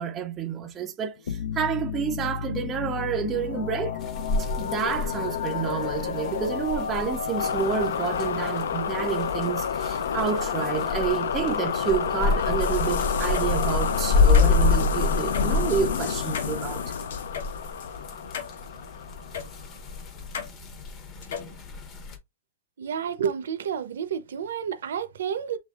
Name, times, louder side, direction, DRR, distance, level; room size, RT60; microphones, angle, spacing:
voice 1, 0.0-4.0 4.4-16.9, right 7 dB, 15° right, 0.4 m, -29 dB
sound 1, 1.3-19.7, left 7 dB, 85° left, 0.5 m, -30 dB
sound 2, 4.0-22.2, left 4 dB, 20° left, 0.7 m, -29 dB
sound 3, 12.6-18.9 19.3-19.5 20.3-20.5 21.2-21.5, left 7 dB, 65° left, 1.0 m, -37 dB
voice 2, 22.8-25.6, right 8 dB, 80° right, 0.7 m, -30 dB
6.6 x 3.3 x 2.4 m
supercardioid pair, 175°, 0 cm